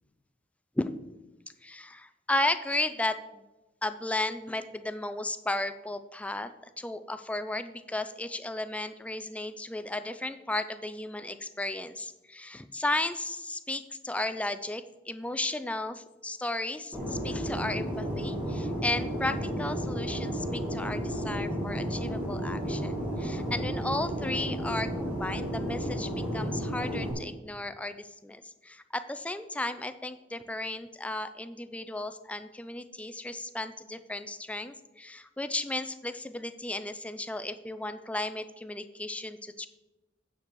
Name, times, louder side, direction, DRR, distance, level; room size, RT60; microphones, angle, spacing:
voice 1, 1.6-3.4 3.8-6.5 6.8-39.7, left 2 dB, 5° left, 10 dB, 0.4 m, -34 dB
Fixed-wing aircraft airplane, 16.9-27.1, equal, 10° right, 2.3 m, -32 dB
9.1 x 6.8 x 4.6 m, 1.0 s
head